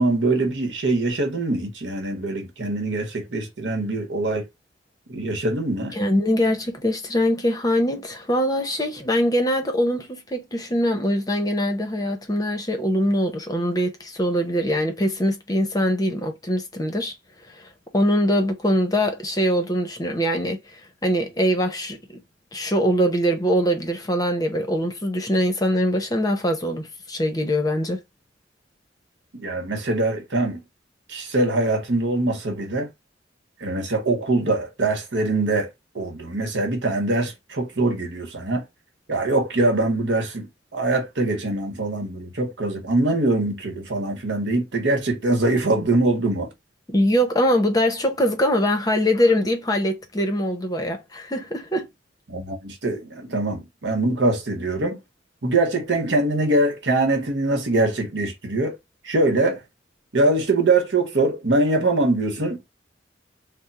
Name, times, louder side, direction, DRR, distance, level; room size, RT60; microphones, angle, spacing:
voice 1, 0.0-4.5 5.1-6.0 29.3-30.6 31.1-32.9 33.6-35.7 35.9-38.6 39.1-46.5 52.3-55.0 55.4-58.8 59.0-59.6 60.1-62.7, right 2 dB, 70° right, 1.1 m, -23 dB
voice 2, 5.9-17.1 17.6-20.6 21.0-22.2 22.5-28.0 46.9-51.9, equal, 20° left, 0.8 m, -22 dB
3.5 x 2.1 x 4.1 m
head